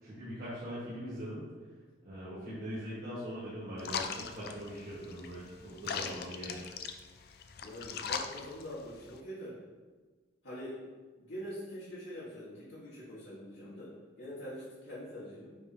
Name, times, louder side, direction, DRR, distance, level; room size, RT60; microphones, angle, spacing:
voice 1, 0.0-1.4 2.1-6.7, equal, 50° right, -12 dB, 1.7 m, -41 dB
sound 1, 3.8-9.2, left 6 dB, 50° left, 0.4 m, -40 dB
voice 2, 5.9-6.2 7.6-9.6 10.4-10.8 11.2-15.5, equal, 85° left, -12 dB, 1.8 m, -44 dB
9.0 x 3.6 x 2.9 m, 1.4 s
head